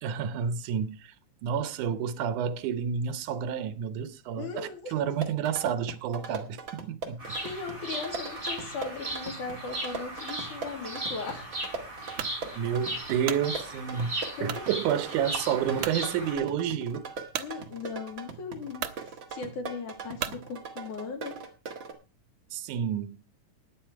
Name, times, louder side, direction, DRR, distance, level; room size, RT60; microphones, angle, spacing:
voice 1, 0.0-1.1 1.4-7.3 12.5-17.1 22.5-23.2, right 8 dB, 90° right, 2.4 m, -30 dB
voice 2, 4.3-4.9 7.4-11.5 14.4-14.6 17.4-21.4, left 5 dB, 85° left, 4.2 m, -38 dB
sound 1, 5.0-21.9, right 5 dB, 45° right, 2.2 m, -41 dB
Bird vocalization bird call bird song, 7.2-16.3, right 1 dB, 15° right, 5.7 m, -37 dB
sound 2, 12.2-12.4 13.0-13.5 14.4-14.7 15.2-15.3 15.8-16.0 17.3-17.5 18.3-18.4 18.8-19.0 20.2-20.4, right 11 dB, 70° right, 2.0 m, -34 dB
13.0 x 10.0 x 4.5 m
omnidirectional pair, 3.5 m